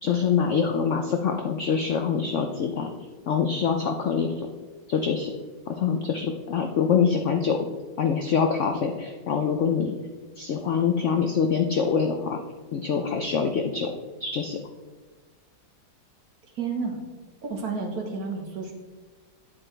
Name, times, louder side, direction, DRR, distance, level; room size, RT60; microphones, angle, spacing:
voice 1, 0.0-2.9 3.3-4.5 4.9-5.3 5.7-7.7 8.0-9.9 10.4-12.4 12.7-13.9 14.2-14.6, left 6 dB, 80° left, 5 dB, 0.6 m, -25 dB
voice 2, 16.5-17.0 17.4-18.7, right 4 dB, 55° right, 1 dB, 1.7 m, -31 dB
9.1 x 7.8 x 3.3 m, 1.4 s
omnidirectional pair, 2.0 m